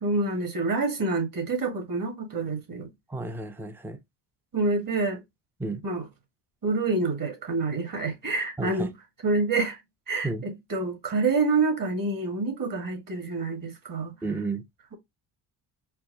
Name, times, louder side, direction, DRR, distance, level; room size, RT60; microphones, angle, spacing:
voice 1, 0.0-2.9 4.5-5.2 5.8-6.1 6.6-8.9 9.2-9.8 10.1-14.1, right 3 dB, 45° right, 1.7 m, -27 dB
voice 2, 3.1-4.0 5.6-5.8 8.6-8.9 10.2-10.4 14.2-14.6, right 3 dB, 5° right, 0.5 m, -32 dB
4.5 x 2.1 x 3.8 m
cardioid pair, 85°, 48 cm